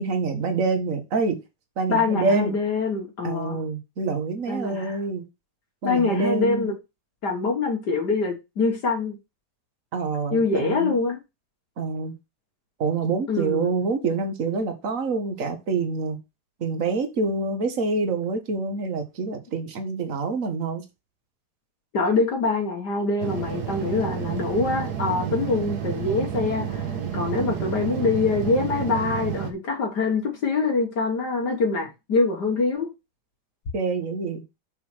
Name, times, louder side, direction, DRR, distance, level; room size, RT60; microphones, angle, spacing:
voice 1, 0.0-1.4 1.8-2.6 3.2-5.2 5.8-6.7 9.9-10.9 11.8-12.1 12.8-16.2 16.6-20.8 33.7-34.4, right 4 dB, 50° right, 1.9 m, -26 dB
voice 2, 1.9-3.6 4.5-5.0 5.8-6.7 7.2-9.2 10.3-11.2 13.3-13.8 21.9-32.9, left 4 dB, 80° left, 2.3 m, -24 dB
sound 1, 23.2-29.5, right 8 dB, 70° right, 1.8 m, -30 dB
7.6 x 4.2 x 6.2 m
omnidirectional pair, 1.8 m